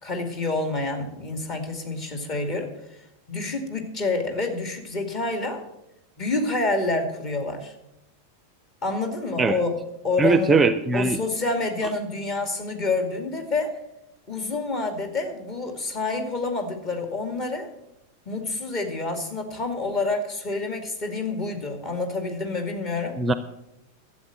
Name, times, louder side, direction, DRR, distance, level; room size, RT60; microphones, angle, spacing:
voice 1, 0.0-2.7 3.3-5.6 6.2-7.7 8.8-13.7 14.3-17.7 18.3-23.2, left 3 dB, 35° left, 5 dB, 2.3 m, -28 dB
voice 2, 10.2-11.2 23.2-23.3, right 3 dB, 15° right, 12 dB, 0.6 m, -20 dB
12.5 x 7.9 x 7.5 m, 0.86 s
figure-of-eight pair, 90°, 0 cm